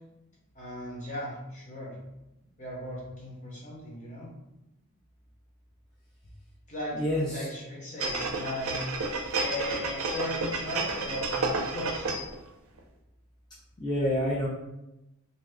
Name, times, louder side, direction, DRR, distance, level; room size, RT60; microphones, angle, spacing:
voice 1, 0.5-2.0 2.6-4.3 6.7-8.9 9.3-12.1, left 1 dB, 35° left, -4 dB, 0.9 m, -37 dB
voice 2, 7.0-7.5 13.8-14.5, equal, 20° left, -6 dB, 0.4 m, -27 dB
sound 1, 8.0-12.4 12.8-12.9, right 3 dB, 70° right, 0.4 m, -31 dB
2.8 x 2.3 x 3.4 m, 0.93 s
head